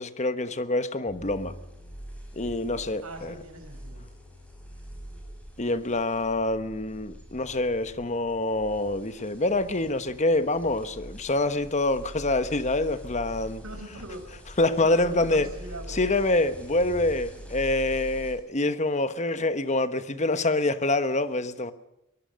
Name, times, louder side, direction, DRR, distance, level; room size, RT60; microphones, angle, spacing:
voice 1, 0.0-1.5 2.3-3.4 5.6-13.6 14.6-15.5 15.9-21.7, left 2 dB, 30° left, 1.1 m, -26 dB
sound 1, 1.1-18.3, equal, 5° left, 5.7 m, -44 dB
voice 2, 3.0-4.1 13.6-14.2 14.8-16.0, right 1 dB, 70° right, 6.0 m, -41 dB
22.0 x 21.5 x 6.4 m
head